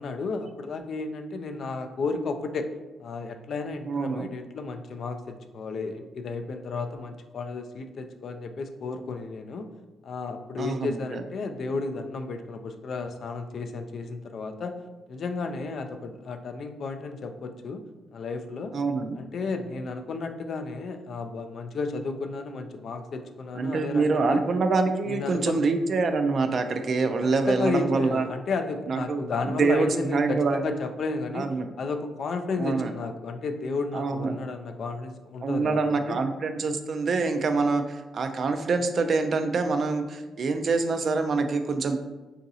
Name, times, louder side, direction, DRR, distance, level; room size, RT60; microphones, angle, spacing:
voice 1, 0.0-2.7 3.0-9.7 10.0-14.8 15.1-17.8 18.1-18.7 19.1-24.4 25.1-25.6 27.2-31.5 31.8-36.2, left 4 dB, 55° left, 7 dB, 0.3 m, -33 dB
voice 2, 3.9-4.3 10.6-11.2 18.7-19.2 23.6-28.2 28.9-30.6 31.3-31.7 32.6-32.9 33.9-34.4 35.4-42.0, right 4 dB, 50° right, 7 dB, 0.3 m, -25 dB
3.8 x 2.4 x 2.7 m, 1.1 s
cardioid pair, 90°, 0 cm